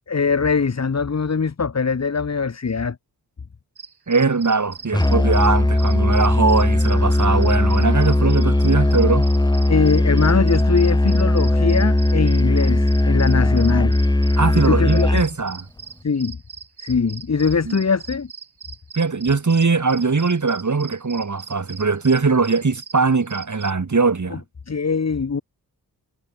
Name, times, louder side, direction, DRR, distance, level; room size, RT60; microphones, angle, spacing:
voice 1, 0.1-3.0 9.7-14.0 14.5-15.2 16.0-16.4 16.8-18.3 24.7-25.4, left 5 dB, 40° left, 1.3 m, -21 dB
sound 1, 3.8-23.7, right 6 dB, 65° right, 3.3 m, -41 dB
voice 2, 4.1-9.3 14.4-15.6 17.7-17.8 18.9-24.4, right 4 dB, 45° right, 2.3 m, -20 dB
Musical instrument, 4.9-15.3, left 1 dB, 10° left, 1.3 m, -18 dB
cardioid pair, 40°, 41 cm